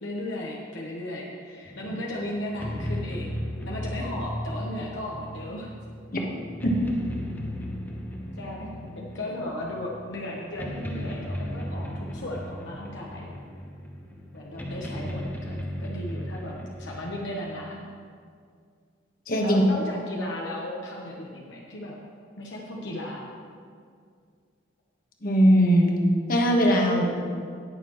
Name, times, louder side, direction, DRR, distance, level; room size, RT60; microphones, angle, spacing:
voice 1, 0.0-5.7 8.4-13.3 14.3-17.9 19.4-22.0 22.4-23.3, left 1 dB, 65° left, -3 dB, 1.1 m, -36 dB
sound 1, 1.7-17.3, equal, 10° left, 0.9 m, -36 dB
voice 2, 19.3-19.6 25.2-25.9 26.3-27.1, equal, 45° left, 0 dB, 1.3 m, -20 dB
18.0 x 6.8 x 3.1 m, 2.2 s
head